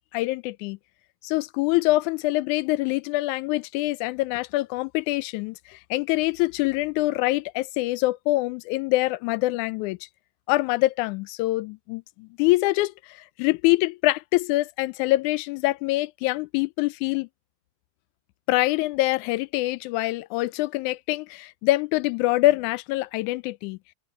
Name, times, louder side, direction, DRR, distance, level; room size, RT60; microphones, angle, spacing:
voice 1, 0.1-0.8 1.2-10.0 10.5-17.3 18.5-23.8, left 19 dB, 85° left, 2.0 m, -25 dB
open air
omnidirectional pair, 3.4 m